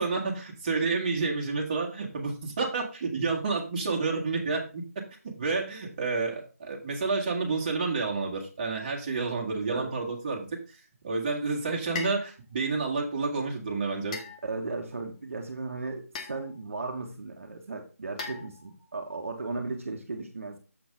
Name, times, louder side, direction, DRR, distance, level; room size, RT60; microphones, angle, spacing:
voice 1, 0.0-4.8 5.4-10.8 11.0-14.2, right 4 dB, 30° right, -1 dB, 1.8 m, -29 dB
sound 1, 11.9-12.3 14.1-14.8 16.1-16.6 18.2-18.9, left 4 dB, 25° left, 0.9 m, -39 dB
voice 2, 14.4-20.6, right 3 dB, 55° right, 3 dB, 1.3 m, -36 dB
7.2 x 6.0 x 3.6 m, 0.33 s
figure-of-eight pair, 160°, 8 cm